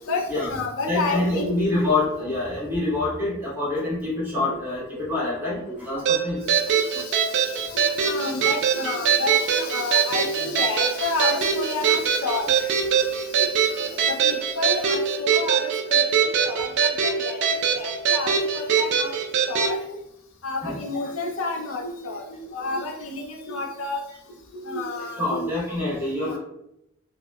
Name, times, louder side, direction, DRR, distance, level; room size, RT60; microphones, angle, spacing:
voice 1, 0.1-1.6 1.8-1.9 2.2-2.3 3.2-3.3 4.5-4.6 5.7-5.8 6.7-12.5 13.0-13.1 13.4-19.1 19.5-19.8 20.4-24.0 24.5-25.4 26.2-26.4, left 3 dB, 65° left, 2 dB, 0.5 m, -30 dB
voice 2, 0.8-6.7 20.6-21.0 25.2-26.4, left 2 dB, 10° right, -7 dB, 0.9 m, -26 dB
sound 1, 6.1-19.7, right 7 dB, 55° right, 0.3 m, -22 dB
2.8 x 2.1 x 2.2 m, 0.81 s
head